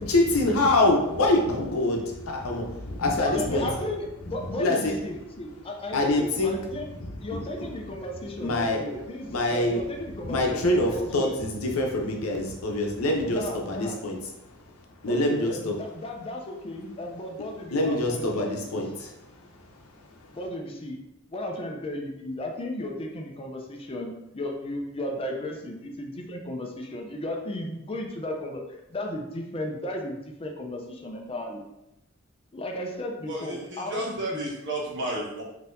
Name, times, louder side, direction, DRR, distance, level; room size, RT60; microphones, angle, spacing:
voice 1, 0.1-3.7 4.6-4.9 5.9-6.5 7.6-7.7 8.4-8.8 9.3-9.8 10.2-14.2 15.0-15.8 17.7-19.1, left 2 dB, 85° left, 1 dB, 0.7 m, -25 dB
voice 2, 3.1-6.9 7.2-10.6 10.9-11.3 13.3-14.0 15.1-18.8 20.3-21.0 21.3-31.6 32.5-34.5, left 1 dB, 25° left, 2 dB, 0.4 m, -35 dB
voice 3, 33.3-35.4, right 1 dB, 55° right, -5 dB, 1.1 m, -32 dB
3.7 x 2.7 x 2.6 m, 0.91 s
head